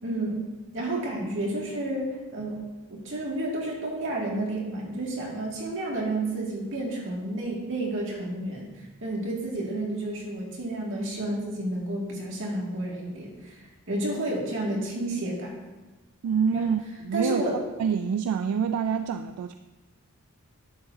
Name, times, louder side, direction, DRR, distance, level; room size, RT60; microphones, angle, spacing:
voice 1, 0.0-15.5 16.5-16.6 17.1-17.6, right 1 dB, 60° right, -3 dB, 2.0 m, -31 dB
voice 2, 16.2-17.4 17.8-19.5, right 7 dB, 80° right, 10 dB, 0.3 m, -26 dB
11.0 x 6.9 x 2.7 m, 1.2 s
head